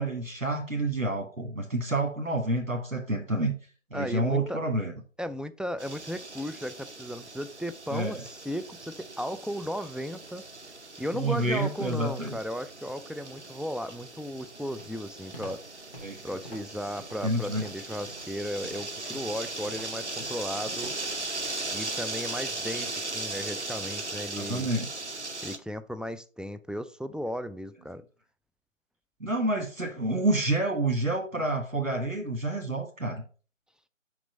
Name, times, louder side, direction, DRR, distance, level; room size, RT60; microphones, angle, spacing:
voice 1, 0.0-3.6 3.9-4.9 7.9-8.2 11.1-12.4 16.0-16.2 16.8-17.0 17.2-17.7 24.3-24.9 29.2-33.2, right 2 dB, 85° right, 1.8 m, -28 dB
voice 2, 3.9-4.6 5.2-8.2 8.5-10.4 11.0-15.6 16.2-20.9 21.7-24.7 25.4-28.0, equal, ahead, 0.3 m, -35 dB
sound 1, 5.8-25.6, right 2 dB, 60° right, 0.9 m, -38 dB
Walk footsteps, 14.8-21.2, equal, 45° left, 3.1 m, -47 dB
6.0 x 5.0 x 5.0 m
figure-of-eight pair, 170°, 39 cm